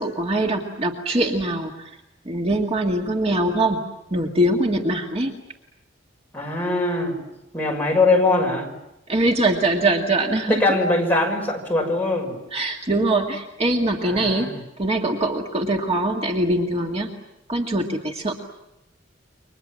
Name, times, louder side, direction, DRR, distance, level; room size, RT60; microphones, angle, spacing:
voice 1, 0.0-1.9 2.3-3.8 4.1-5.3 9.1-10.8 12.5-14.5 14.8-17.1 17.5-18.3, right 1 dB, 35° right, 2 dB, 2.0 m, -22 dB
voice 2, 6.3-7.2 7.5-8.7 10.5-12.4 14.0-14.6, left 2 dB, 10° left, 1 dB, 6.1 m, -21 dB
29.5 x 24.5 x 7.5 m, 0.90 s
head